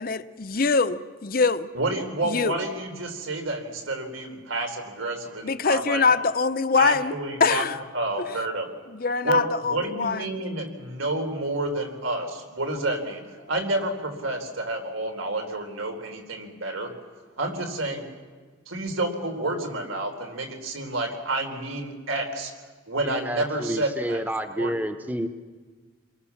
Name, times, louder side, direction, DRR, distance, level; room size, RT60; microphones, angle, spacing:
voice 1, 0.0-1.7 2.2-2.6 5.4-7.8 8.9-10.4, left 4 dB, 45° left, 12 dB, 0.8 m, -24 dB
voice 2, 1.7-6.0 6.8-7.6 7.9-8.7 9.2-9.4 9.7-13.2 13.5-16.9 17.4-18.0 18.7-22.5 22.9-24.2 24.6-24.7, right 2 dB, 90° right, 5 dB, 4.2 m, -29 dB
voice 3, 23.0-25.3, right 1 dB, 10° right, 8 dB, 0.9 m, -29 dB
28.5 x 22.5 x 7.2 m, 1.4 s
head